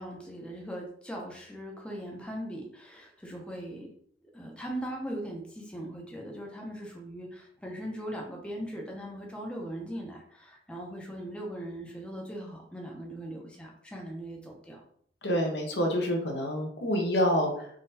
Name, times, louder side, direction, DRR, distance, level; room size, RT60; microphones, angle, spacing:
voice 1, 0.0-3.9 4.3-14.8, right 1 dB, 5° left, -1 dB, 0.6 m, -39 dB
voice 2, 15.2-17.7, equal, 70° left, 2 dB, 0.8 m, -27 dB
3.7 x 3.1 x 2.7 m, 0.63 s
head